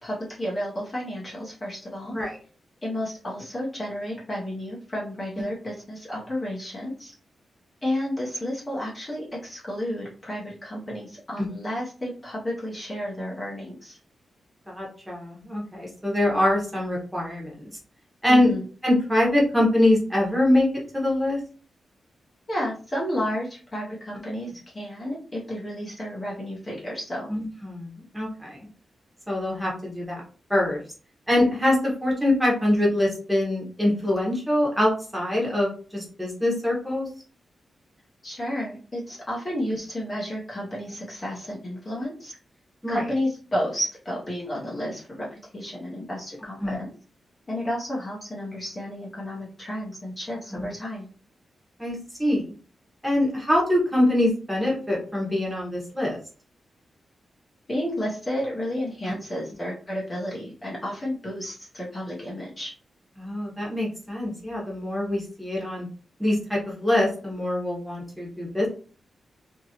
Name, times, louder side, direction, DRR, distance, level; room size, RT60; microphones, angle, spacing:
voice 1, 0.0-2.1 2.8-7.1 7.8-14.0 18.3-18.6 22.5-27.3 38.2-42.3 42.9-46.9 47.5-51.1 57.7-62.7, equal, 20° left, -5 dB, 0.8 m, -31 dB
voice 2, 14.7-17.5 18.2-18.5 18.8-21.4 27.3-28.6 29.3-30.2 30.5-30.8 31.3-37.1 42.8-43.0 46.6-46.8 50.5-50.6 51.8-52.5 53.0-56.2 63.2-65.9 66.2-68.7, left 1 dB, 5° right, -3 dB, 1.0 m, -24 dB
2.9 x 2.6 x 2.8 m, 0.40 s
wide cardioid pair, 170°, 0 cm